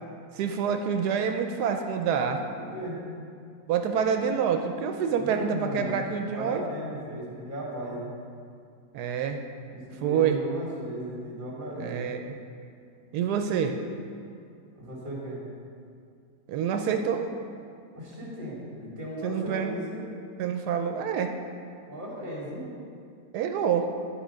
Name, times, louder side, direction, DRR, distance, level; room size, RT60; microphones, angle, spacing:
voice 1, 0.3-2.4 3.7-6.6 8.9-9.4 10.0-10.4 11.8-12.4 13.1-13.8 16.5-17.3 19.2-19.8 20.4-21.3 23.3-23.9, right 7 dB, 85° right, 5 dB, 1.1 m, -27 dB
voice 2, 2.6-3.0 5.1-8.1 9.7-12.1 14.7-15.4 17.9-20.0 21.9-22.8, equal, 30° right, -3 dB, 1.9 m, -36 dB
11.0 x 4.8 x 5.1 m, 2.3 s
omnidirectional pair, 1.7 m